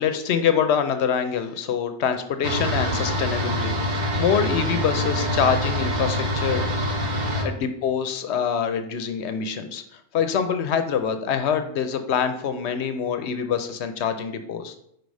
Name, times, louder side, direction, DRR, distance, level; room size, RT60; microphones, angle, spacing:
voice 1, 0.0-6.7 7.0-14.8, left 7 dB, 85° left, 9 dB, 0.9 m, -25 dB
sound 1, 2.4-7.4, equal, 85° right, 1.4 m, -25 dB
5.2 x 4.7 x 4.7 m, 0.73 s
omnidirectional pair, 1.1 m